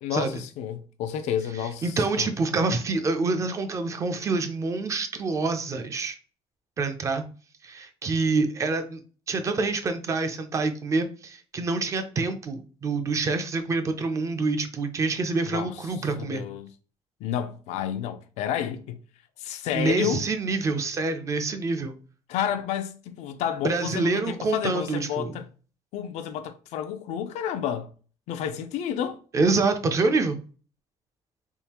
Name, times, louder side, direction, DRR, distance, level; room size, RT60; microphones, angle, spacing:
voice 1, 0.0-2.3 15.5-15.7 16.2-16.7 17.2-19.0 19.4-20.3 22.3-25.4 25.9-27.9 28.3-29.2, left 9 dB, 75° left, 0.5 m, -30 dB
voice 2, 1.8-6.2 6.8-7.2 7.6-9.0 9.3-16.4 19.7-21.9 23.6-25.4 29.3-30.4, right 3 dB, 25° right, 0.4 m, -26 dB
3.6 x 2.4 x 2.8 m
cardioid pair, 155°, 12 cm